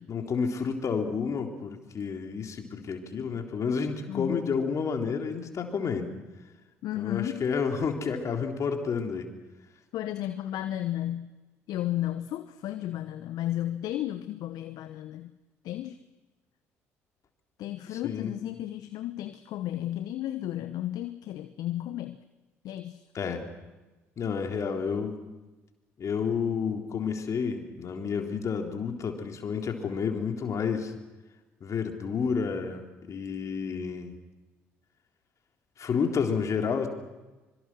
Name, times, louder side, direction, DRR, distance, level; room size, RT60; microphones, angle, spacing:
voice 1, 0.1-6.1 7.0-9.3 17.9-18.3 23.1-23.4 24.2-25.2 26.0-30.9 31.6-34.1 35.8-36.9, left 6 dB, 45° left, 3 dB, 3.7 m, -30 dB
voice 2, 4.1-4.5 6.8-7.4 9.9-11.3 11.7-15.3 15.6-16.0 17.6-22.2 22.6-23.1, left 13 dB, 60° left, 11 dB, 1.0 m, -33 dB
25.5 x 23.5 x 6.2 m, 1.2 s
hypercardioid pair, 50°, 7 cm